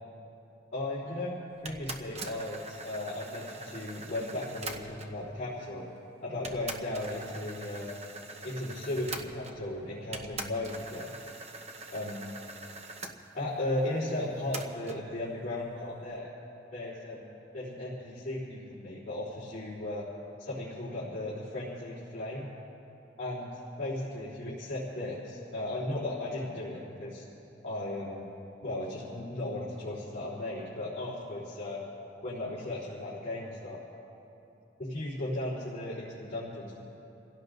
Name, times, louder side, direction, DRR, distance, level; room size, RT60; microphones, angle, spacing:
voice 1, 0.7-1.4 1.6-5.9 6.2-8.0 8.4-11.1 11.9-12.3 13.3-16.3 16.7-20.0 20.4-22.5 23.2-23.5 23.8-27.2 27.6-28.3 28.6-31.8 32.2-33.8 34.8-36.8, left 1 dB, 45° left, -10 dB, 3.5 m, -36 dB
sound 1, 1.6-5.2 6.0-6.1 6.4-9.7 10.1-13.1 14.5-15.0, right 3 dB, 35° right, 1.0 m, -43 dB
29.5 x 16.5 x 2.6 m, 2.9 s
head